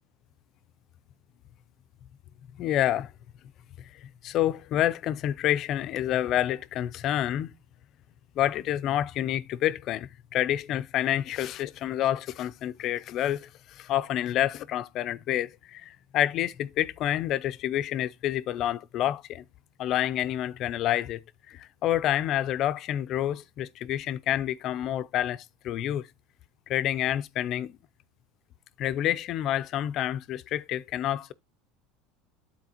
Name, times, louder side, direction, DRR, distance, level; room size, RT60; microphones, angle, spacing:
voice 1, 2.6-3.1 3.8-7.5 8.4-19.4 19.8-26.1 26.7-27.8 28.8-31.3, left 12 dB, 45° left, 0.4 m, -28 dB
12.0 x 4.2 x 2.8 m
supercardioid pair, 140°, 0 cm